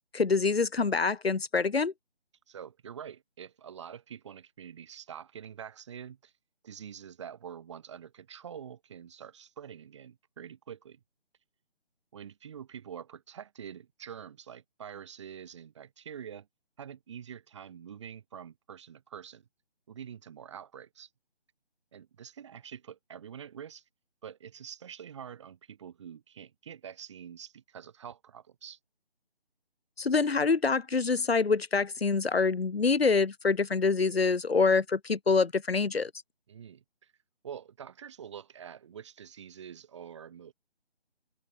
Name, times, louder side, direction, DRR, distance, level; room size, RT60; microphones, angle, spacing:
voice 1, 0.1-1.9 30.0-36.1, left 4 dB, 65° left, 2.1 m, -26 dB
voice 2, 2.5-6.3 6.6-11.0 12.1-16.5 16.8-19.5 19.9-21.1 21.9-23.8 24.2-28.8 36.5-37.1 37.4-40.5, right 8 dB, 25° right, 5.0 m, -46 dB
open air
figure-of-eight pair, 170°, 33 cm